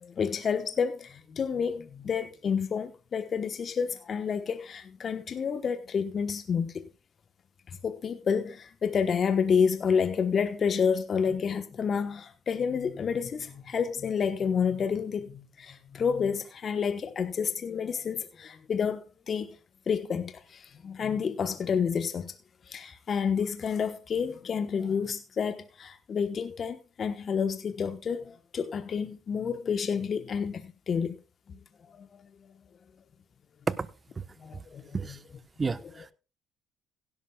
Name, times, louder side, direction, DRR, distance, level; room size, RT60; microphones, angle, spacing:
voice 1, 0.0-6.8 7.8-19.5 19.9-22.3 22.7-31.1 32.0-32.1 34.4-35.1, left 6 dB, 45° left, 1.1 m, -29 dB
voice 2, 35.6-36.1, right 4 dB, 30° right, 1.0 m, -30 dB
16.5 x 12.0 x 2.3 m
hypercardioid pair, 60°, 0 cm